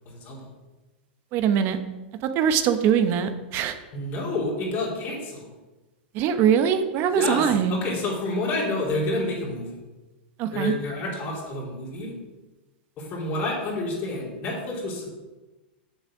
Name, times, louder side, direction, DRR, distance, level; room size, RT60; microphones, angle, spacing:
voice 1, 0.1-0.5 3.9-5.5 7.1-9.7 10.5-12.1 13.0-15.1, left 2 dB, 35° left, -3 dB, 2.7 m, -29 dB
voice 2, 1.3-1.8 2.3-3.8 6.1-7.8 10.4-10.7, right 8 dB, 40° right, 9 dB, 0.8 m, -22 dB
7.1 x 6.4 x 4.8 m, 1.1 s
hypercardioid pair, 135°, 6 cm